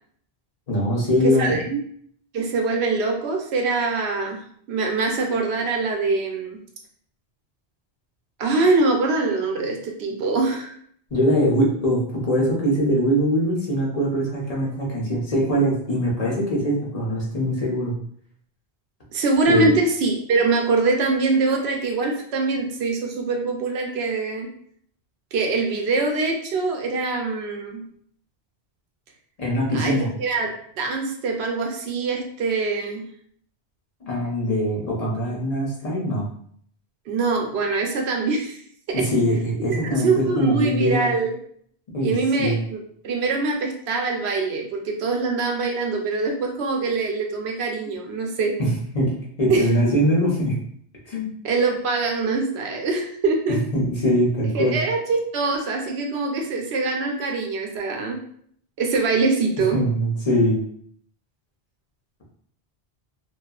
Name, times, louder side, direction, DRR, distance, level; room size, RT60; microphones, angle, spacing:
voice 1, 0.7-1.8 11.1-17.9 19.5-19.7 29.4-30.1 34.0-36.3 38.9-41.1 41.9-42.1 42.4-42.6 48.6-48.7 48.9-49.1 49.4-50.6 51.1-51.3 53.5-54.8 59.7-60.6, equal, 40° left, -5 dB, 0.7 m, -22 dB
voice 2, 1.2-1.6 2.3-6.6 8.4-10.8 19.1-24.5 25.3-27.8 29.7-33.0 37.1-38.6 38.9-39.0 39.9-41.4 42.0-42.8 43.0-48.5 49.5-49.7 51.4-53.6 54.5-58.2 58.8-59.8, right 3 dB, 80° right, 2 dB, 0.8 m, -23 dB
2.7 x 2.3 x 2.3 m, 0.62 s
omnidirectional pair, 1.1 m